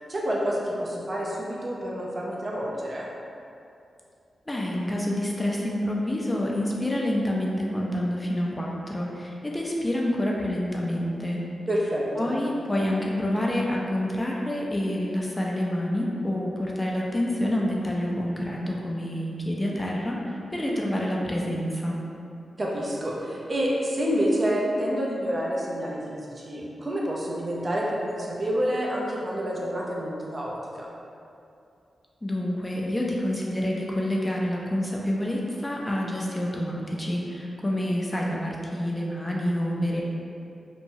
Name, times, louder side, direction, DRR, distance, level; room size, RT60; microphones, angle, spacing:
voice 1, 0.1-3.1 11.7-12.3 22.6-30.9, equal, 40° right, -4 dB, 0.5 m, -28 dB
voice 2, 4.5-11.4 12.2-21.9 32.2-40.0, left 1 dB, 20° left, -3 dB, 0.4 m, -28 dB
2.9 x 2.2 x 2.6 m, 2.6 s
cardioid pair, 55°, 0 cm